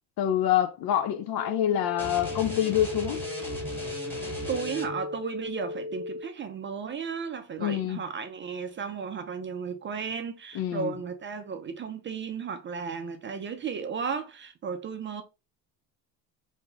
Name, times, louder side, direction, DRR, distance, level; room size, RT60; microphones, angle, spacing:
voice 1, 0.2-3.2 7.6-8.0 10.5-10.9, left 11 dB, 50° left, 0.6 m, -26 dB
sound 1, 1.3-6.3, left 3 dB, 75° left, 1.1 m, -36 dB
sound 2, 2.0-5.2, right 1 dB, 5° left, 1.6 m, -38 dB
voice 2, 4.5-15.2, right 6 dB, 25° right, 0.5 m, -34 dB
3.0 x 2.7 x 3.3 m
hypercardioid pair, 80°, 48 cm